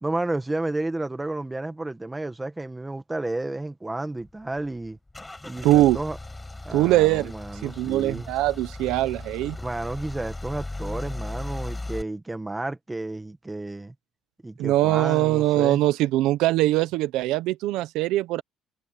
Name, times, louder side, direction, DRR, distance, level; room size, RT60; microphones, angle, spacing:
voice 1, 0.0-5.0 5.4-6.2 6.6-8.3 9.6-13.9 14.4-15.8, right 2 dB, 10° right, 1.7 m, -31 dB
Car / Engine starting / Idling, 4.2-12.0, left 2 dB, 10° left, 6.5 m, -37 dB
voice 2, 5.6-6.0 6.7-7.3 7.6-9.6 14.6-18.4, right 16 dB, 85° right, 0.8 m, -22 dB
cardioid pair, 140°, 0 cm